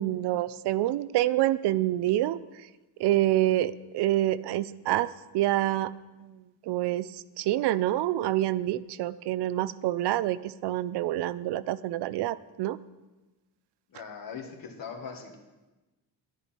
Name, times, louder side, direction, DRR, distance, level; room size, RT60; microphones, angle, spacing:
voice 1, 0.0-2.4 3.0-5.9 6.7-7.0 7.4-12.8, right 14 dB, 75° right, 17 dB, 0.5 m, -27 dB
voice 2, 13.9-15.3, left 6 dB, 55° left, 3 dB, 1.6 m, -40 dB
10.0 x 9.9 x 4.3 m, 1.1 s
cardioid pair, 135°, 41 cm